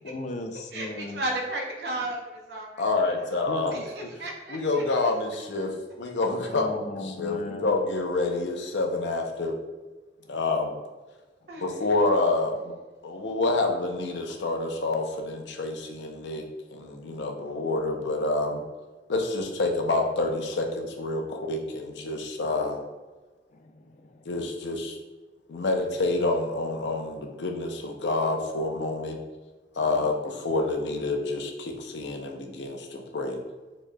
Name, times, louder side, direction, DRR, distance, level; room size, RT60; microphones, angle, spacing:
voice 1, 0.0-1.3 3.5-3.9 6.5-7.7 10.2-10.3 23.5-24.3, left 2 dB, 40° left, 5 dB, 0.4 m, -37 dB
voice 2, 0.7-3.1 3.7-4.8 11.5-11.9, right 1 dB, 70° right, 0 dB, 0.8 m, -34 dB
voice 3, 2.8-3.8 4.5-6.7 7.0-9.5 10.3-10.7 11.6-12.7 13.0-16.4 16.7-18.6 19.1-22.8 24.3-25.0 25.5-29.2 29.8-33.4, left 2 dB, 90° left, 3 dB, 0.6 m, -28 dB
4.5 x 3.0 x 2.2 m, 1.2 s
head